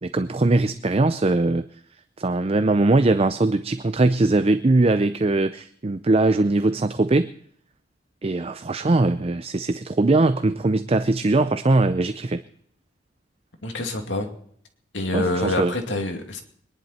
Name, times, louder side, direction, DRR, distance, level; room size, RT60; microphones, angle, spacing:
voice 1, 0.0-1.7 2.2-7.3 8.2-12.4 15.1-15.7, right 2 dB, 30° right, 11 dB, 0.5 m, -21 dB
voice 2, 13.6-14.3 14.9-16.4, left 2 dB, 75° left, 4 dB, 2.4 m, -26 dB
23.5 x 11.0 x 4.3 m, 0.62 s
head